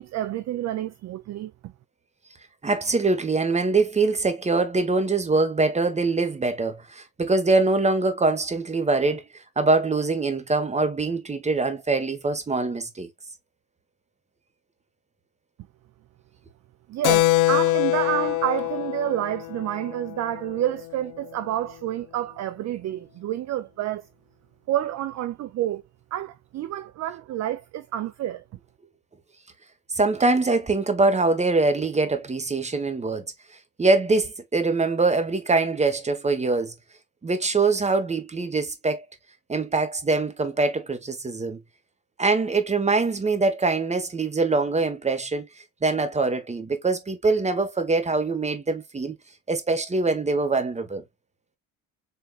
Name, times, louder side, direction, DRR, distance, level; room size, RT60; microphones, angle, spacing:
voice 1, 0.0-1.7 16.9-24.0 24.7-25.8 26.1-28.4, right 13 dB, 45° right, 0.5 m, -29 dB
voice 2, 2.6-9.2 9.6-13.1 29.9-33.3 33.8-36.7 37.2-39.0 39.5-41.6 42.2-45.5 45.8-49.2 49.5-51.0, right 3 dB, 15° right, 1.3 m, -23 dB
Keyboard (musical), 17.0-21.1, left 17 dB, 85° left, 0.5 m, -24 dB
4.4 x 3.5 x 2.4 m
supercardioid pair, 95°, 38 cm